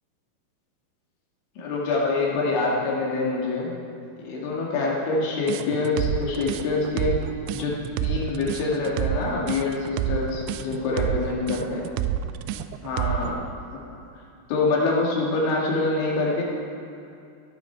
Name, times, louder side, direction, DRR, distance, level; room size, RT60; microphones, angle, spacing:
voice 1, 1.6-3.7 4.3-7.1 7.5-7.7 8.0-11.9 12.8-13.4 13.7-13.8 14.5-16.4, left 3 dB, 85° left, -3 dB, 4.4 m, -25 dB
sound 1, 5.5-13.3, right 12 dB, 85° right, 2.8 m, -28 dB
17.5 x 10.5 x 4.5 m, 2.6 s
omnidirectional pair, 5.2 m